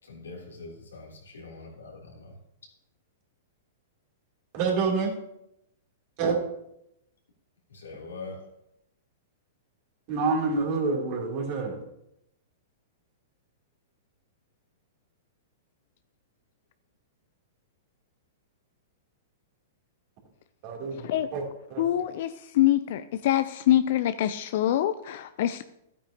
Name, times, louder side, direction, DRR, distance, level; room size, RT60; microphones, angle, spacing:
voice 1, 0.0-2.4 7.7-8.5, left 3 dB, 90° left, 3.1 m, -43 dB
voice 2, 4.5-5.2 6.2-6.4 10.1-11.8 20.6-21.4 21.7-21.8, right 4 dB, 50° right, 2.9 m, -27 dB
voice 3, 21.8-25.6, left 12 dB, 60° left, 0.4 m, -25 dB
12.5 x 8.8 x 2.8 m
hypercardioid pair, 120°, 0 cm